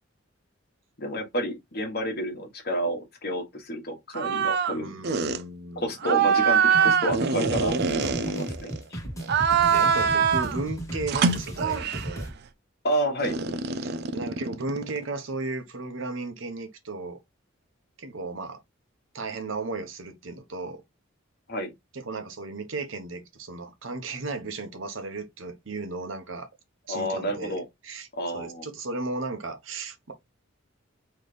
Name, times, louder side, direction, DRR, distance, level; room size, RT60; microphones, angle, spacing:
voice 1, 1.0-4.9 5.7-9.0 12.8-13.4 21.5-21.7 26.9-27.6 28.1-28.7, equal, 50° left, 1.3 m, -30 dB
sound 1, 4.1-4.8 5.0-5.4 6.0-8.8 9.2-10.6 11.1-12.2 13.2-15.0, right 6 dB, 55° right, 0.4 m, -24 dB
voice 2, 4.7-5.9 9.6-12.3 13.8-17.2 18.0-18.6 19.1-20.8 21.9-26.5 26.9-28.1 28.3-30.1, right 3 dB, 70° right, 0.9 m, -35 dB
sound 2, 6.7-12.3, right 1 dB, 15° left, 1.4 m, -35 dB
3.9 x 3.2 x 3.3 m
head